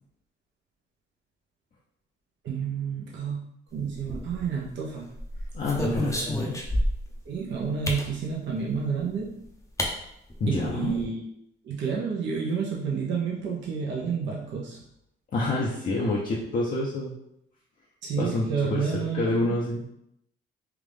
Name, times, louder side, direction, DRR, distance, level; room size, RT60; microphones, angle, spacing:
voice 1, 2.4-3.4 3.7-5.1 5.7-6.2 7.3-9.4 10.5-11.3 11.6-14.8 18.0-19.6, right 6 dB, 65° right, -3 dB, 0.8 m, -30 dB
sound 1, 3.9-4.6 5.2-7.2 7.8-8.1 9.2-9.3 9.8-9.9 10.3-10.4 10.6-11.0, left 1 dB, 15° left, 0.7 m, -30 dB
voice 2, 5.5-6.5 10.4-10.9 15.3-17.1 18.2-19.8, left 2 dB, 45° left, -5 dB, 0.7 m, -28 dB
3.5 x 2.5 x 3.4 m, 0.78 s
cardioid pair, 90°, 20 cm